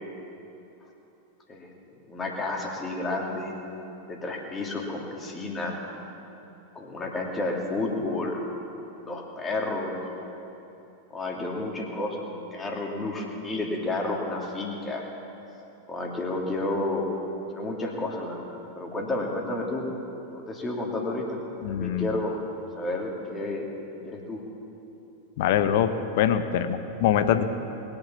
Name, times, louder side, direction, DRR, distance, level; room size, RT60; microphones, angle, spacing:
voice 1, 2.1-3.5 4.1-5.8 6.7-8.4 9.0-10.0 11.1-15.0 15.9-17.1 17.5-19.9 20.3-21.4 21.7-22.4 22.8-23.7 24.0-24.4, left 2 dB, 20° left, 0 dB, 2.6 m, -31 dB
voice 2, 21.6-22.1 25.4-27.4, left 9 dB, 50° left, 10 dB, 0.9 m, -24 dB
21.0 x 8.8 x 7.3 m, 2.9 s
figure-of-eight pair, 90°, 0 cm